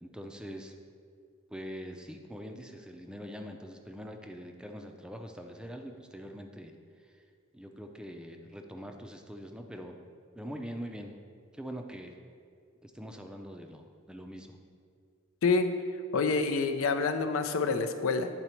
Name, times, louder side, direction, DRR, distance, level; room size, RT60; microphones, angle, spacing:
voice 1, 0.0-0.7 1.5-6.7 7.1-7.2 7.5-10.0 10.3-11.2 11.5-12.2 12.8-14.6, equal, 5° right, 3 dB, 0.4 m, -43 dB
voice 2, 16.1-18.3, left 4 dB, 90° left, 7 dB, 0.5 m, -27 dB
10.0 x 4.1 x 4.4 m, 2.2 s
head